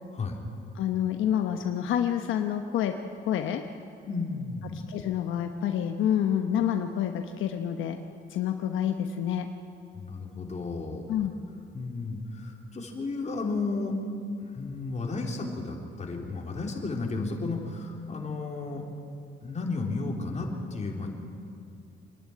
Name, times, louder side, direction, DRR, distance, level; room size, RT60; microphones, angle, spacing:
voice 1, 0.7-2.9 3.2-3.6 4.9-8.0 8.3-9.5 11.1-11.3, left 9 dB, 80° left, 5 dB, 1.0 m, -28 dB
voice 2, 4.1-4.8 9.9-11.0 11.7-14.0 14.4-18.9 19.4-21.1, left 3 dB, 35° left, 0 dB, 3.8 m, -33 dB
26.5 x 11.0 x 10.0 m, 2.5 s
cardioid pair, 90°, 20 cm